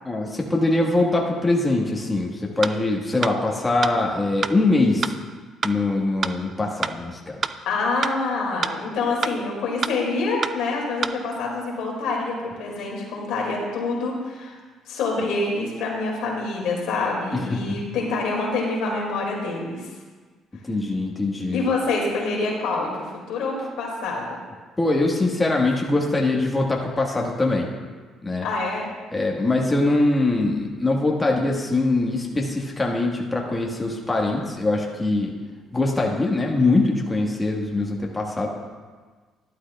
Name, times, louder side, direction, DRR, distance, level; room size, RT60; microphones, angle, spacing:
voice 1, 0.0-5.1 5.6-7.4 17.5-17.8 20.7-21.6 24.8-27.7 28.2-28.5 29.1-35.3 35.7-38.5, left 2 dB, 20° left, -1 dB, 1.5 m, -22 dB
sound 1, 2.6-2.7 3.2-3.3 3.8-3.9 4.4-4.5 5.0-5.1 5.6-5.7 6.2-6.3 6.8-6.9 7.4-7.5 8.0-8.1 8.6-8.7 9.2-9.3 9.8-9.9 10.4-10.5 11.0-11.1, right 6 dB, 45° right, 0.4 m, -25 dB
voice 2, 7.6-14.6 14.9-19.8 21.5-24.4 28.4-28.9, left 3 dB, 80° left, -2 dB, 2.3 m, -26 dB
12.0 x 11.5 x 2.4 m, 1.4 s
supercardioid pair, 75°, 0 cm